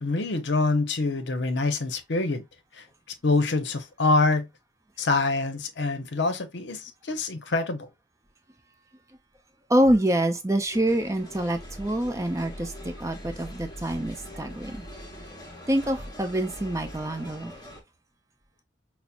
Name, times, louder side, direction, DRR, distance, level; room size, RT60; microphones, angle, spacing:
voice 1, 0.0-2.4 2.8-2.9 3.2-4.5 5.0-7.9, left 3 dB, 65° left, 0.7 m, -25 dB
voice 2, 9.7-14.8 15.7-17.5, right 1 dB, 15° right, 0.5 m, -26 dB
sound 1, 10.7-17.8, equal, 20° left, 0.9 m, -42 dB
5.6 x 2.0 x 2.3 m
head